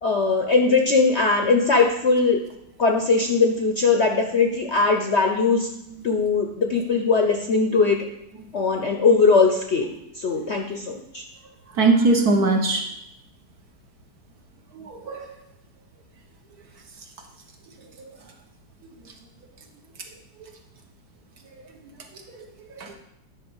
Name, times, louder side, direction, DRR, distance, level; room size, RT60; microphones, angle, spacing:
voice 1, 0.0-2.4 2.8-5.7 6.0-8.0 8.5-11.2, left 4 dB, 50° left, 3 dB, 0.8 m, -20 dB
voice 2, 11.7-12.9 14.7-15.3 18.0-18.1 22.4-23.0, right 3 dB, 60° right, 3 dB, 1.6 m, -21 dB
10.0 x 4.5 x 7.2 m, 0.82 s
omnidirectional pair, 2.0 m